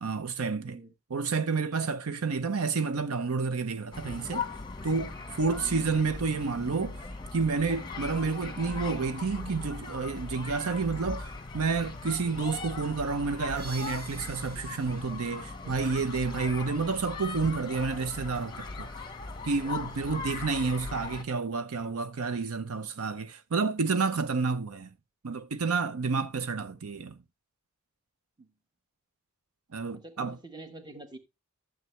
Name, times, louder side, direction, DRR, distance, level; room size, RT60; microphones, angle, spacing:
voice 1, 0.0-0.8 1.1-4.5 4.8-7.0 7.3-18.9 19.4-24.9 25.2-27.1 29.7-30.4, right 4 dB, 75° right, 0.7 m, -30 dB
voice 2, 0.6-0.9 5.6-5.9 16.8-17.1 26.9-27.2 28.4-28.5 29.9-31.2, right 3 dB, 20° right, 1.2 m, -47 dB
sound 1, 3.9-21.2, left 3 dB, 20° left, 1.1 m, -39 dB
sound 2, 13.6-16.3, right 2 dB, 45° right, 1.9 m, -50 dB
12.0 x 7.3 x 3.2 m
head